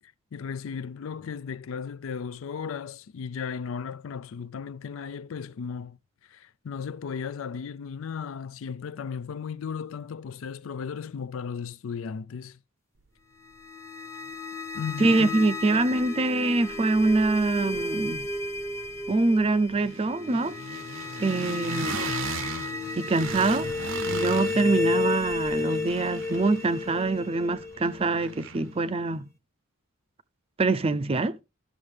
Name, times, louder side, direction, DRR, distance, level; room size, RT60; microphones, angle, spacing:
voice 1, 0.0-6.0 6.2-12.6 14.7-15.3, left 6 dB, 70° left, 0.4 m, -35 dB
sound 1, 13.4-28.4, left 3 dB, 15° left, 0.8 m, -32 dB
sound 2, 14.9-15.0 15.2-16.4 16.6-28.8, right 4 dB, 60° right, 0.7 m, -39 dB
voice 2, 15.0-18.3 19.1-20.5 21.2-22.0 23.0-23.7 24.1-29.3 30.6-31.4, right 3 dB, 25° right, 0.4 m, -24 dB
12.5 x 6.4 x 3.3 m
head